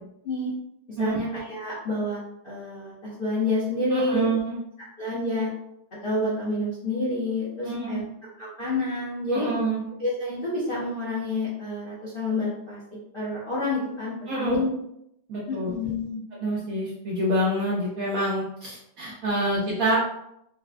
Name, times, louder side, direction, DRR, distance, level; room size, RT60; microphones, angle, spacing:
voice 1, 0.9-4.3 5.0-5.5 6.0-8.0 8.4-9.5 10.0-12.8 13.1-14.7 15.5-16.2, left 2 dB, 45° left, -9 dB, 0.7 m, -28 dB
voice 2, 3.9-4.6 7.6-8.0 9.3-9.8 14.3-14.6 15.3-15.7 16.4-20.0, right 1 dB, 65° right, -5 dB, 0.9 m, -26 dB
4.0 x 2.2 x 2.4 m, 0.78 s
omnidirectional pair, 2.0 m